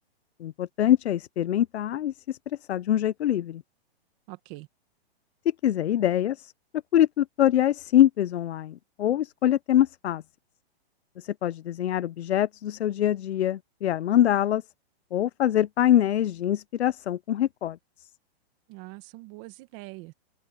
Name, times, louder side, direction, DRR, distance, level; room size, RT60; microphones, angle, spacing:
voice 1, 0.4-3.6 5.6-6.5 6.9-10.2 11.2-14.6 15.1-18.1, left 11 dB, 85° left, 0.7 m, -24 dB
voice 2, 4.3-4.7 18.7-20.1, right 23 dB, 30° right, 1.8 m, -43 dB
open air
hypercardioid pair, 160°, 32 cm